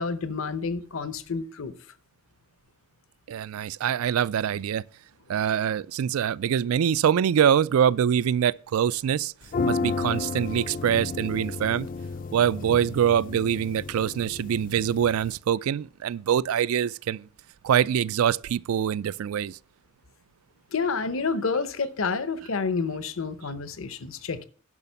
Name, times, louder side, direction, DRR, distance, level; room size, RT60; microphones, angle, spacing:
voice 1, 0.0-1.7 20.7-24.5, left 4 dB, 70° left, 0.8 m, -29 dB
voice 2, 3.3-4.8 5.3-9.3 9.6-11.9 12.3-17.3 17.6-19.6, right 9 dB, 85° right, 0.3 m, -24 dB
sound 1, 9.4-15.4, left 4 dB, 40° left, 0.4 m, -32 dB
11.0 x 5.8 x 5.6 m
head